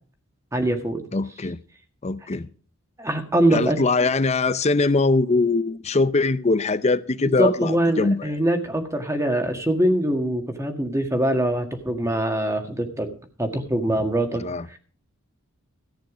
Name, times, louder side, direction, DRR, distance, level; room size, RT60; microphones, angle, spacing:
voice 1, 0.5-1.0 3.0-3.8 7.2-13.1 13.4-14.4 14.7-14.8, right 1 dB, 15° right, 1.7 m, -23 dB
voice 2, 1.1-1.6 2.0-2.5 3.5-8.3 14.3-14.8, left 3 dB, 30° left, 0.6 m, -22 dB
14.0 x 9.2 x 5.0 m
head